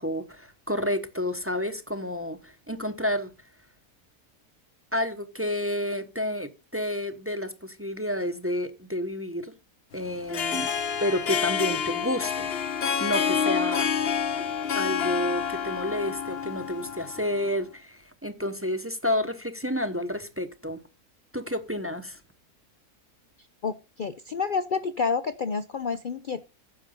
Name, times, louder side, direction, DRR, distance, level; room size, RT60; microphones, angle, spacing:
voice 1, 0.0-3.3 4.9-9.5 9.9-10.7 11.0-12.5 13.0-14.1 14.7-20.8 21.3-22.2, left 1 dB, 10° right, 0.7 m, -30 dB
Harp, 10.2-17.5, left 7 dB, 50° left, 1.0 m, -28 dB
voice 2, 23.6-26.5, left 5 dB, 70° left, 0.4 m, -29 dB
9.8 x 6.7 x 5.3 m
omnidirectional pair, 1.6 m